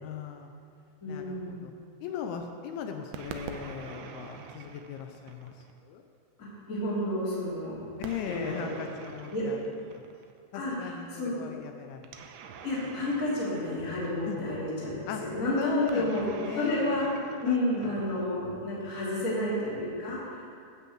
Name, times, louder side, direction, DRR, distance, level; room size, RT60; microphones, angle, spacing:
voice 1, 0.0-0.5 1.0-1.7 2.0-6.0 8.0-10.0 10.5-12.2 14.3-14.4 15.1-15.2 15.6-16.1 16.4-16.8 17.4-17.9, left 7 dB, 80° left, 5 dB, 2.3 m, -38 dB
voice 2, 1.0-1.7 6.7-7.8 8.3-8.7 9.3-9.4 10.5-11.3 12.6-16.3 16.5-17.1 17.4-20.4, left 1 dB, 20° left, -9 dB, 2.6 m, -30 dB
sound 1, 3.1-5.8 8.0-10.4 12.0-14.5 15.9-18.3, right 6 dB, 80° right, 2.5 m, -45 dB
12.0 x 5.5 x 7.9 m, 2.3 s
omnidirectional pair, 5.1 m